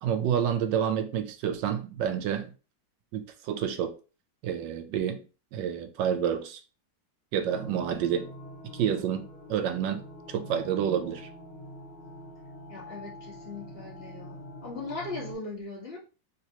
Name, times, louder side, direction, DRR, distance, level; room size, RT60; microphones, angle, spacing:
voice 1, 0.0-2.5 3.1-3.9 4.4-5.2 5.5-6.6 7.3-8.3 8.7-10.0 10.3-11.3, right 8 dB, 80° right, 1.3 m, -29 dB
sound 1, 7.5-15.3, left 1 dB, 55° left, 1.9 m, -45 dB
voice 2, 12.7-14.3 14.6-16.0, left 3 dB, 35° left, 1.4 m, -39 dB
3.5 x 2.9 x 2.8 m
omnidirectional pair, 2.0 m